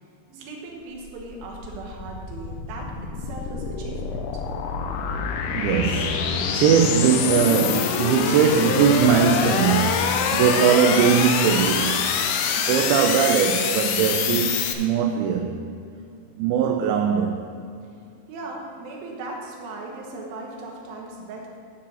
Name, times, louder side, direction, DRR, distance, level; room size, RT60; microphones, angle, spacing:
voice 1, 0.3-2.9 3.2-4.4 18.3-21.5, right 2 dB, 65° right, -2 dB, 2.8 m, -38 dB
sound 1, 1.0-14.7, left 7 dB, 85° left, 2.3 m, -25 dB
voice 2, 5.5-15.6 16.4-17.4, right 7 dB, 80° right, 3 dB, 2.7 m, -21 dB
9.9 x 4.8 x 7.5 m, 2.5 s
omnidirectional pair, 5.6 m